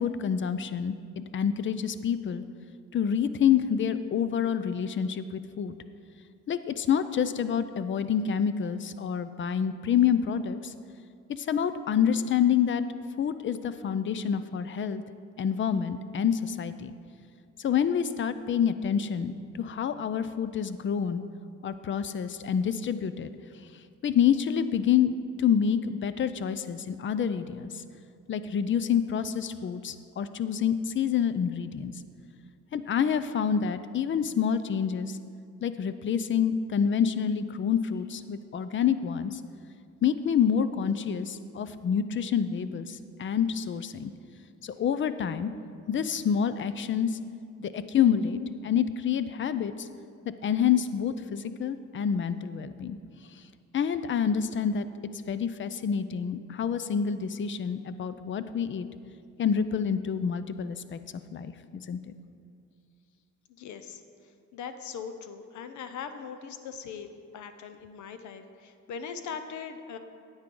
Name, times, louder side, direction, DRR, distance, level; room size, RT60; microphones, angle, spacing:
voice 1, 0.0-2.4 2.9-5.7 6.5-10.7 11.3-12.8 13.2-15.0 15.4-16.9 17.6-21.2 21.6-23.3 24.0-25.1 25.4-27.7 28.3-31.9 32.7-35.2 35.6-39.4 40.0-44.1 44.6-45.5 45.9-47.2 47.6-49.9 50.2-53.0 53.7-54.9 55.3-58.9 59.4-61.0 61.3-62.0, left 8 dB, 40° left, 12 dB, 0.5 m, -27 dB
voice 2, 63.5-64.0 64.5-70.0, left 6 dB, 75° left, 9 dB, 0.7 m, -40 dB
9.7 x 8.9 x 3.8 m, 2.4 s
cardioid pair, 90°, 30 cm